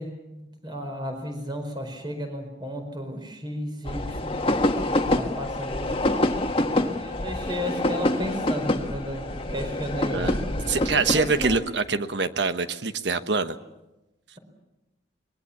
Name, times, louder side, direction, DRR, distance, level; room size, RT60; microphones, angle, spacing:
voice 1, 0.0-4.3 4.9-5.9 6.2-6.3 6.7-10.5 11.1-11.5, equal, 25° right, 5 dB, 4.7 m, -34 dB
sound 1, 3.8-11.6, left 1 dB, 30° left, 1.6 m, -26 dB
voice 2, 10.1-10.4 10.7-13.6, right 4 dB, 75° right, 10 dB, 1.2 m, -25 dB
25.0 x 21.5 x 7.3 m, 0.99 s
head